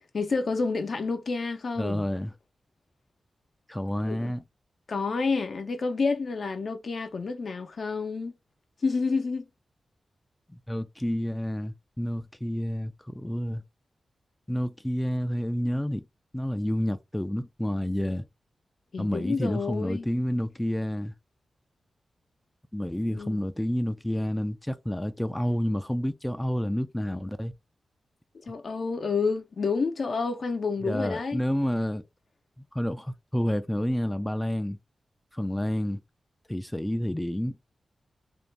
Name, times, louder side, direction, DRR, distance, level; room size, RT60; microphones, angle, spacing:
voice 1, 0.1-2.0 4.1-4.3 4.9-8.3 8.8-9.4 18.9-20.1 23.1-23.4 28.5-31.4, left 4 dB, 65° left, 0.5 m, -29 dB
voice 2, 1.8-2.3 3.7-4.4 10.7-13.6 14.5-16.0 16.3-18.2 19.0-21.1 22.7-27.5 30.8-32.0 32.7-34.8 35.3-36.0 36.5-37.5, equal, 10° left, 0.3 m, -29 dB
2.5 x 2.1 x 3.2 m
cardioid pair, 55°, 0 cm